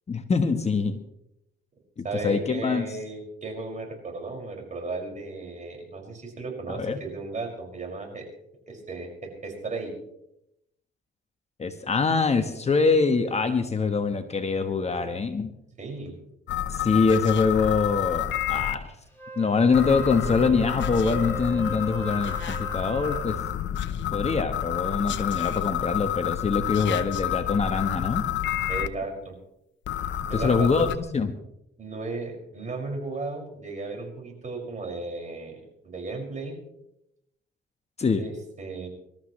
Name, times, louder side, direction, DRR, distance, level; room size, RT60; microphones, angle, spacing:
voice 1, 0.1-1.0 2.0-2.8 6.7-7.0 11.6-15.5 16.7-18.9 19.4-23.4 24.1-28.2 30.3-30.9 31.1-31.3 38.0-38.3, left 4 dB, 35° left, 7 dB, 1.3 m, -24 dB
voice 2, 2.0-8.3 8.7-9.9 15.8-16.1 28.7-29.3 30.2-30.9 31.8-36.5 38.2-38.9, right 3 dB, 40° right, 1 dB, 6.0 m, -35 dB
sound 1, 16.5-18.7 19.7-28.9 29.9-31.0, left 11 dB, 70° left, 0.9 m, -29 dB
Wind instrument woodwind instrument, 19.1-23.4, right 4 dB, 10° left, 7.5 m, -39 dB
26.0 x 13.5 x 3.2 m, 0.80 s
cardioid pair, 90°, 20 cm